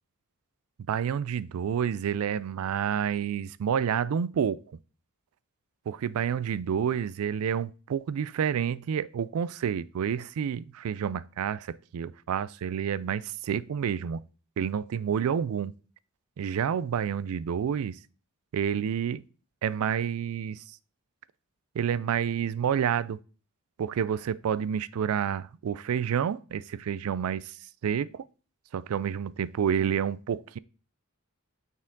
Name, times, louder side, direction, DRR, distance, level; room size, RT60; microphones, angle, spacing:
voice 1, 0.9-4.6 5.9-14.2 14.6-15.8 16.4-18.0 18.5-19.2 19.6-20.6 21.8-23.2 23.8-27.5 27.8-28.2 28.7-30.6, right 8 dB, 75° right, 0.3 m, -29 dB
6.0 x 4.4 x 3.9 m
head